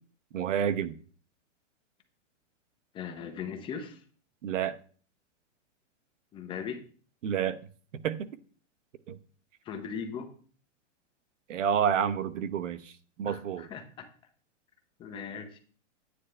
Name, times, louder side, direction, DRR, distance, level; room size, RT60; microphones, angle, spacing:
voice 1, 0.3-0.9 4.4-4.8 7.2-7.6 8.0-8.2 9.1-9.2 11.5-12.8 13.2-13.6, right 8 dB, 85° right, 1.0 m, -28 dB
voice 2, 2.9-4.0 6.3-6.8 9.6-10.3 13.2-14.1 15.0-15.6, left 6 dB, 15° left, 0.7 m, -38 dB
10.0 x 9.6 x 3.3 m
hypercardioid pair, 160°, 36 cm